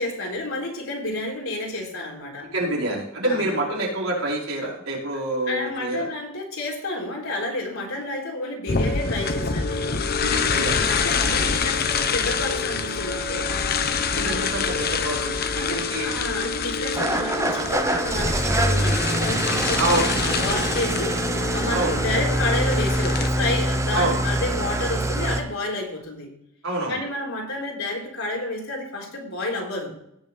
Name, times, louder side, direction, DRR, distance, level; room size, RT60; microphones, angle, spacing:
voice 1, 0.0-2.5 3.2-3.4 5.5-10.4 10.8-13.5 14.2-14.5 15.5-26.3 26.9-29.9, left 2 dB, 75° left, -1 dB, 3.8 m, -30 dB
voice 2, 2.5-6.1 10.2-10.9 11.4-11.6 14.1-15.4 15.7-16.3 19.8-20.1 21.7-22.0 23.9-24.2 26.6-27.0, right 1 dB, 70° right, -4 dB, 5.0 m, -27 dB
sound 1, 8.7-23.3, left 5 dB, 45° left, 0.9 m, -26 dB
Engine starting / Idling, 17.0-25.4, right 1 dB, 15° right, 0.9 m, -24 dB
17.0 x 6.2 x 4.2 m, 0.77 s
head